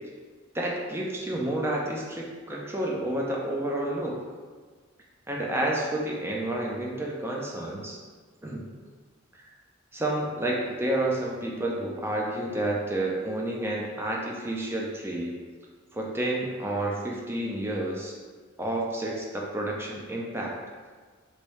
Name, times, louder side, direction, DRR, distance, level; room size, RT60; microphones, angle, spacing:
voice 1, 0.5-4.2 5.3-8.0 8.4-8.6 9.9-15.4 15.9-18.2 18.6-20.6, right 1 dB, 10° right, -2 dB, 0.4 m, -30 dB
3.1 x 2.7 x 3.1 m, 1.5 s
head